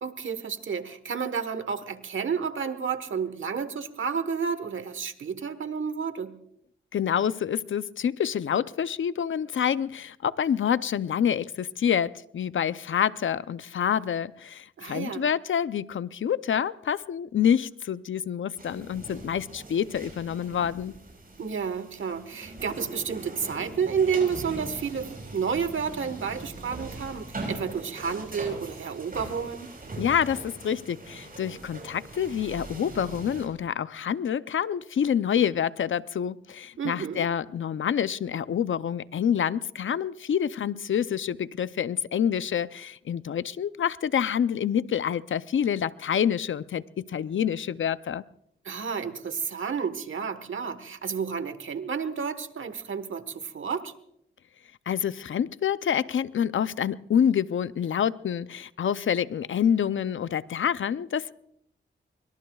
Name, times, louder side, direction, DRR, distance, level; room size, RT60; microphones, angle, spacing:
voice 1, 0.0-6.3 14.8-15.2 21.4-29.7 36.8-37.3 48.6-53.9, right 6 dB, 80° right, 11 dB, 1.3 m, -31 dB
voice 2, 6.9-20.9 30.0-48.2 54.9-61.3, left 8 dB, 80° left, 15 dB, 0.6 m, -27 dB
sound 1, 18.6-33.5, right 2 dB, 45° right, 7.5 m, -41 dB
25.0 x 23.5 x 2.4 m, 0.73 s
cardioid pair, 55°, 20 cm